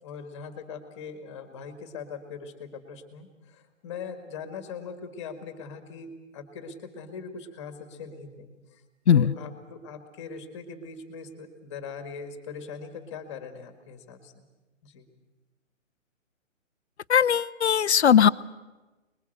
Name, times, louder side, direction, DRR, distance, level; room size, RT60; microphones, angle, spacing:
voice 1, 0.0-8.8 9.1-14.4 14.8-15.1, left 5 dB, 20° left, 8 dB, 1.9 m, -41 dB
voice 2, 17.1-18.3, left 8 dB, 55° left, 17 dB, 0.7 m, -19 dB
25.0 x 21.0 x 8.0 m, 1.2 s
hypercardioid pair, 165°, 39 cm